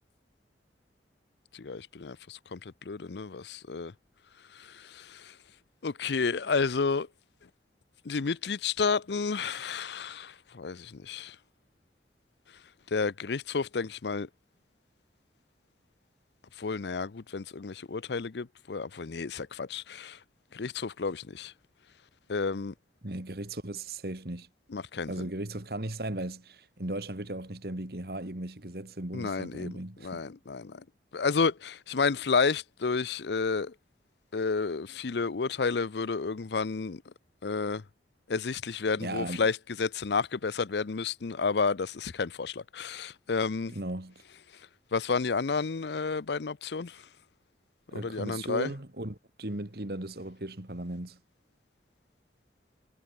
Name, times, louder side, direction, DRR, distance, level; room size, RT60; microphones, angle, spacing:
voice 1, 1.5-3.9 4.5-5.3 5.8-7.1 8.0-11.4 12.9-14.3 16.6-20.2 20.5-21.5 22.3-22.7 24.7-25.3 29.1-29.7 30.0-30.8 31.1-33.7 34.3-37.0 37.4-37.8 38.3-43.7 44.9-47.0 47.9-48.7, left 4 dB, 75° left, 0.6 m, -31 dB
voice 2, 23.0-24.5 25.1-30.2 39.0-39.4 43.7-44.1 47.9-51.2, right 1 dB, 60° right, 2.2 m, -37 dB
head